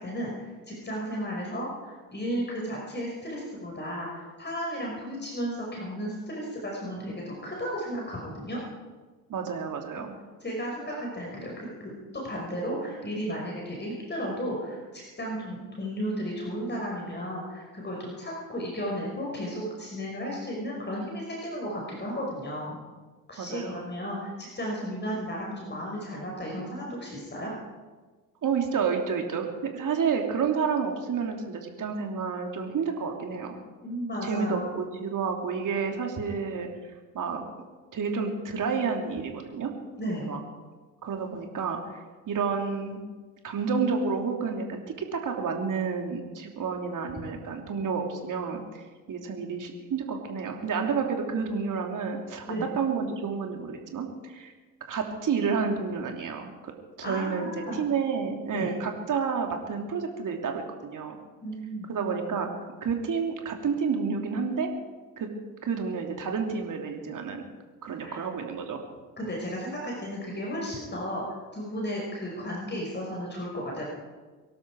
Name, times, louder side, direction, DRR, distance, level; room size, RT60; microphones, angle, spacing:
voice 1, 0.0-8.6 9.9-10.0 10.4-22.8 23.3-27.5 33.8-34.8 40.0-40.3 52.5-52.7 57.0-57.8 58.5-58.7 61.4-61.9 68.0-68.2 69.2-71.2 71.5-73.8, equal, 25° left, -2 dB, 5.4 m, -34 dB
voice 2, 9.3-10.1 23.4-23.8 28.4-29.5 29.7-33.6 34.2-36.7 37.1-37.4 37.9-39.7 40.2-40.4 41.0-41.8 42.3-43.0 43.4-52.4 52.7-54.5 54.9-56.7 57.0-61.2 61.9-62.5 62.8-64.7 65.2-65.3 65.6-67.4 67.8-68.8, right 5 dB, 45° right, 3 dB, 3.2 m, -30 dB
23.5 x 12.5 x 4.8 m, 1.3 s
hypercardioid pair, 55°, 45 cm